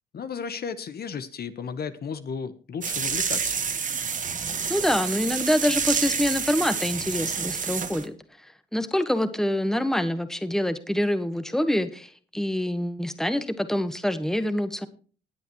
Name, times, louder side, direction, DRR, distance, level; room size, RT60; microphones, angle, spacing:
voice 1, 0.1-3.5, left 6 dB, 55° left, 11 dB, 1.2 m, -34 dB
sound 1, 2.8-8.1, right 6 dB, 40° right, 1.6 m, -28 dB
voice 2, 4.7-8.2 8.4-14.9, left 1 dB, ahead, 11 dB, 1.3 m, -26 dB
19.5 x 8.2 x 3.1 m, 0.39 s
cardioid pair, 90°, 20 cm